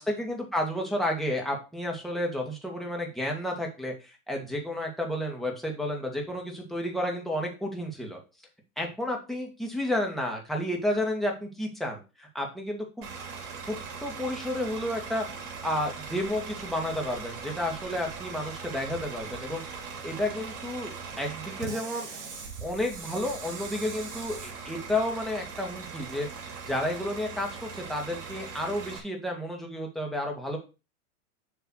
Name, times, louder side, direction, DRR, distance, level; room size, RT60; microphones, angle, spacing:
voice 1, 0.0-8.2 8.8-13.1 13.7-13.8 14.0-19.6 20.0-20.9 21.2-22.1 22.6-30.6, left 1 dB, ahead, 0 dB, 1.8 m, -31 dB
Bus / Idling, 13.0-29.0, right 5 dB, 50° right, 2.5 m, -40 dB
7.0 x 3.3 x 6.1 m, 0.30 s
hypercardioid pair, 110°, 44 cm